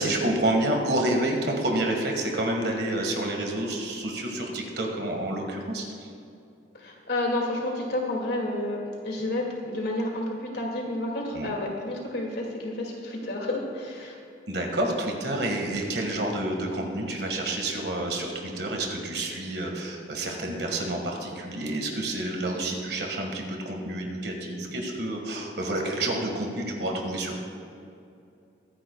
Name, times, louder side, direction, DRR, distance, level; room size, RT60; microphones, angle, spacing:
voice 1, 0.0-6.1 11.3-11.5 14.5-27.4, right 1 dB, 70° right, 1 dB, 1.7 m, -29 dB
voice 2, 6.8-14.2, left 1 dB, 70° left, -1 dB, 2.3 m, -30 dB
22.5 x 9.8 x 2.3 m, 2.6 s
head